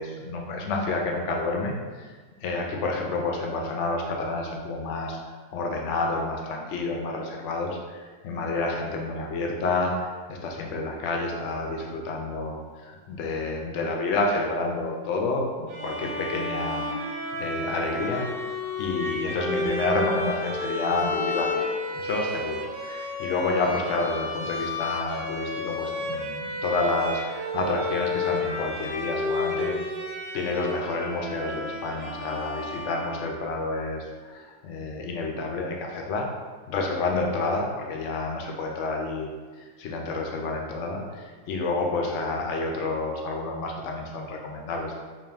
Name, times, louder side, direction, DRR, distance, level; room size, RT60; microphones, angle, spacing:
voice 1, 0.0-1.8 2.4-5.2 5.5-18.2 18.8-29.7 30.3-36.3 36.7-39.3 39.6-44.9, left 3 dB, 65° left, 1 dB, 0.7 m, -29 dB
Bowed string instrument, 15.7-33.5, left 2 dB, 85° right, 1.3 m, -31 dB
3.7 x 2.6 x 3.4 m, 1.4 s
omnidirectional pair, 1.7 m